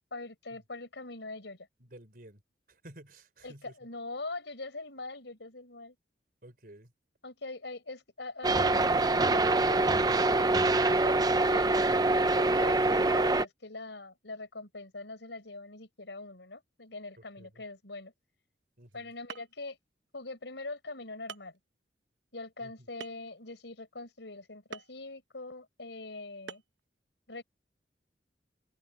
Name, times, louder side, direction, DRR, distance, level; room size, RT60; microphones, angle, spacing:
voice 1, 0.1-1.7 3.4-5.9 7.2-18.1 18.9-19.8 20.1-21.6 22.3-26.6 27.3-27.4, left 2 dB, 80° left, 4.5 m, -43 dB
voice 2, 1.8-2.4 2.7-3.7 6.4-6.9 17.4-17.6 18.8-19.1 22.6-22.7, right 1 dB, 55° right, 4.4 m, -52 dB
sound 1, 8.4-13.4, right 2 dB, 20° right, 0.6 m, -25 dB
sound 2, 18.9-19.0 19.3-19.7 20.5-20.6 21.3-21.6 23.0-23.4 24.7-25.0 26.5-26.8, right 6 dB, 85° right, 1.0 m, -44 dB
head